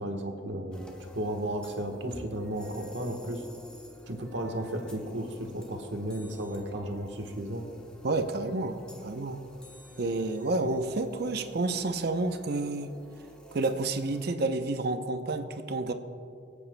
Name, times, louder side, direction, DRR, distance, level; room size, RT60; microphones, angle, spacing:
voice 1, 0.0-3.4 4.0-7.7, right 1 dB, 85° right, 3 dB, 1.2 m, -34 dB
sound 1, 0.7-14.3, left 1 dB, 5° left, 1.0 m, -51 dB
voice 2, 8.0-9.4 10.0-12.9 13.5-15.9, right 2 dB, 60° right, 8 dB, 0.6 m, -30 dB
24.5 x 8.4 x 2.2 m, 2.5 s
head